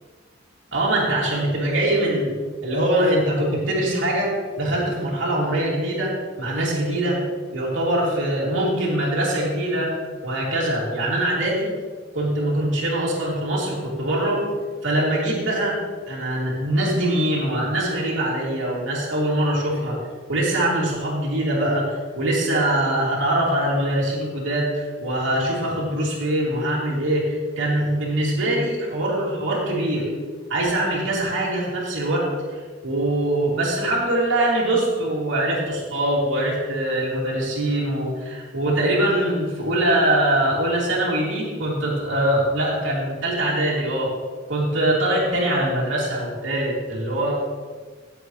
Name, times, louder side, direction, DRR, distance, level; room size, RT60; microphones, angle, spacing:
voice 1, 0.7-2.3 2.6-7.2 7.5-9.9 10.2-11.7 12.1-14.4 14.8-15.8 16.0-20.0 20.3-30.1 30.5-44.1 44.5-47.3, right 1 dB, 75° right, -5 dB, 3.0 m, -23 dB
15.5 x 7.7 x 3.3 m, 1.5 s
head